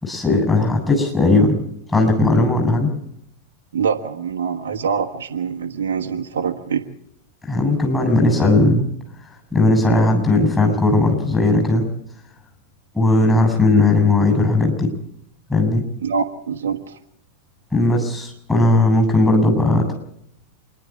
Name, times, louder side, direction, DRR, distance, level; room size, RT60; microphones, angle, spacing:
voice 1, 0.0-1.6 1.9-2.9 7.5-8.9 9.5-11.9 12.9-14.9 15.5-15.9 17.7-19.9, left 2 dB, 10° left, 2 dB, 6.6 m, -17 dB
voice 2, 3.7-6.9 16.0-17.0, right 6 dB, 65° right, 3 dB, 1.4 m, -24 dB
27.5 x 11.0 x 8.6 m, 0.73 s
figure-of-eight pair, 90°, 0 cm